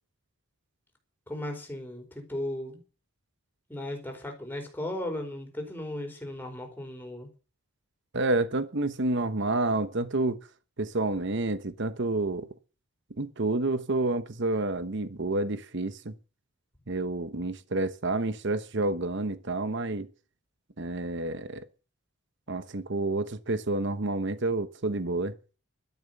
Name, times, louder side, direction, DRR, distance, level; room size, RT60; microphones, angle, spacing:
voice 1, 1.3-2.8 3.7-7.3 17.4-17.5, left 1 dB, 10° left, 4.5 m, -36 dB
voice 2, 8.1-10.4 10.8-12.5 13.2-16.1 16.9-20.1 20.8-21.7 22.5-25.3, right 2 dB, 55° right, 1.0 m, -29 dB
12.5 x 10.5 x 6.7 m
head